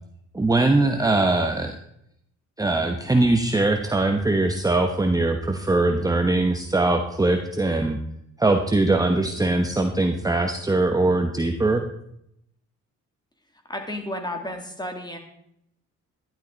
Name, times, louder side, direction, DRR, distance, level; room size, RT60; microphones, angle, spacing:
voice 1, 0.3-1.7 2.6-8.0 8.4-11.8, right 2 dB, 10° right, 4 dB, 1.1 m, -21 dB
voice 2, 13.7-15.2, left 1 dB, 15° left, 4 dB, 2.6 m, -32 dB
12.0 x 11.5 x 4.0 m, 0.75 s
cardioid pair, 90°, 30 cm